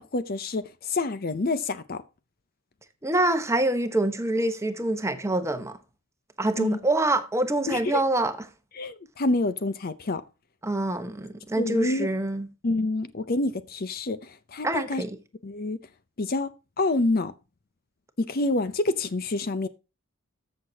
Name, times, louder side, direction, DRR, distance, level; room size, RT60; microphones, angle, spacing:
voice 1, 0.0-2.0 6.6-6.8 7.7-8.0 8.7-10.2 11.6-12.1 12.6-15.0 15.4-15.8 16.2-16.5 16.8-17.3 18.2-19.7, left 2 dB, 45° left, 0.6 m, -27 dB
voice 2, 3.0-5.8 6.4-8.3 10.6-12.5 14.6-15.2, right 2 dB, 15° right, 1.0 m, -25 dB
14.0 x 6.5 x 2.8 m
head